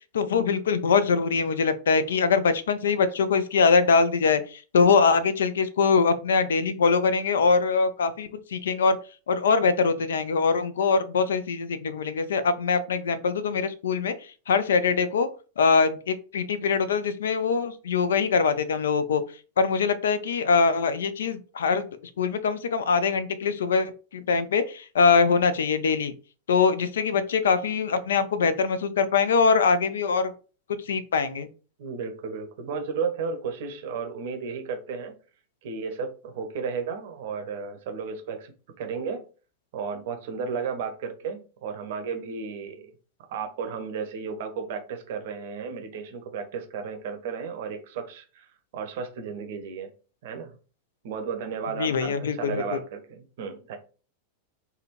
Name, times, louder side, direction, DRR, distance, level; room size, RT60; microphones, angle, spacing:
voice 1, 0.1-9.0 9.3-14.1 14.5-15.3 15.6-19.2 19.6-21.9 22.2-26.1 26.5-30.3 30.9-31.5 51.8-52.8, left 5 dB, 65° left, 14 dB, 0.4 m, -23 dB
voice 2, 31.8-35.1 35.6-38.5 38.8-39.2 39.7-42.9 43.3-48.5 48.7-49.9 50.2-50.5 51.0-53.8, right 5 dB, 55° right, 5 dB, 0.7 m, -33 dB
3.5 x 2.2 x 2.9 m, 0.36 s
figure-of-eight pair, 90°, 0 cm